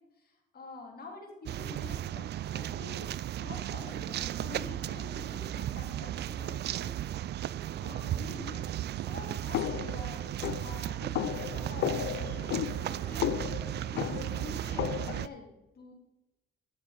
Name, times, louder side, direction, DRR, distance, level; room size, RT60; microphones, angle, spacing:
voice 1, 0.1-3.1 3.4-7.4 7.8-8.7 9.0-10.2 10.6-15.9, left 3 dB, 50° left, 0 dB, 3.2 m, -47 dB
sound 1, 1.5-15.3, right 12 dB, 60° right, 0.4 m, -35 dB
sound 2, 9.5-15.3, left 12 dB, 75° left, 0.5 m, -34 dB
10.5 x 7.2 x 5.2 m, 0.98 s
cardioid pair, 90°, 20 cm